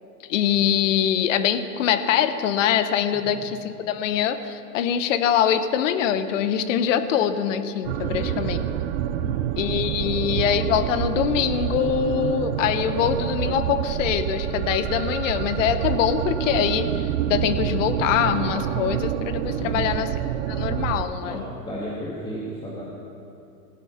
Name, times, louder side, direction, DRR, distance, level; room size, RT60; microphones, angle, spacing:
voice 1, 0.3-8.6 9.6-20.1 20.5-21.4, left 9 dB, 50° left, 11 dB, 1.0 m, -23 dB
voice 2, 3.1-3.4 8.0-8.4 9.1-9.4 10.0-10.2 19.6-19.9 21.2-22.8, equal, 10° left, -6 dB, 2.0 m, -35 dB
sound 1, 7.8-21.0, right 10 dB, 40° right, 0.7 m, -27 dB
16.0 x 9.8 x 5.9 m, 2.7 s
hypercardioid pair, 130°, 48 cm